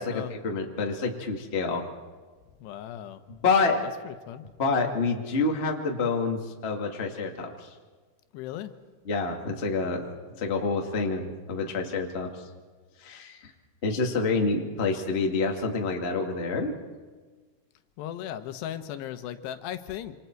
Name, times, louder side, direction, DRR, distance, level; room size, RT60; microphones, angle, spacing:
voice 1, 0.0-1.8 3.3-3.8 4.6-7.7 9.1-10.1 10.3-12.4 13.0-13.5 13.8-16.7, left 4 dB, 25° left, 2 dB, 1.3 m, -28 dB
voice 2, 2.6-3.2 4.0-4.4 8.3-8.7 18.0-20.2, left 11 dB, 85° left, 10 dB, 3.2 m, -37 dB
27.5 x 27.0 x 4.6 m, 1.4 s
omnidirectional pair, 4.7 m